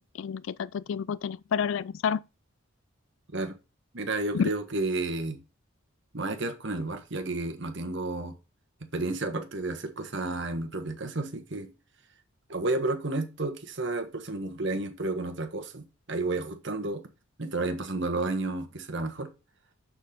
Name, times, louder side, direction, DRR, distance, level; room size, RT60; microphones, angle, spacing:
voice 1, 0.0-2.2 4.3-4.5, left 7 dB, 65° left, 0.3 m, -29 dB
voice 2, 3.9-5.4 6.1-8.3 8.8-11.7 12.5-17.0 17.4-19.3, right 2 dB, 60° right, 1.4 m, -31 dB
6.5 x 6.3 x 5.1 m
head